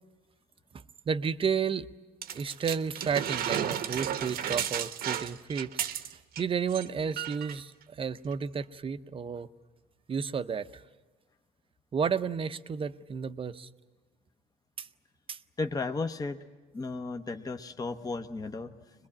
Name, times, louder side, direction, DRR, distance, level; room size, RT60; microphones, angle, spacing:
voice 1, 1.1-1.9 2.3-5.7 6.4-7.7 8.0-9.5 10.1-10.7 11.9-13.7 14.8-14.9 15.3-15.4, right 6 dB, 30° right, 11 dB, 0.7 m, -31 dB
sound 1, 2.2-6.4 6.7-6.9 7.2-7.6 8.3-8.4, right 9 dB, 65° right, 0.9 m, -33 dB
voice 2, 15.6-16.4 16.7-18.7, left 3 dB, 20° left, 7 dB, 0.8 m, -34 dB
22.5 x 21.5 x 8.7 m, 1.3 s
cardioid pair, 110°, 17 cm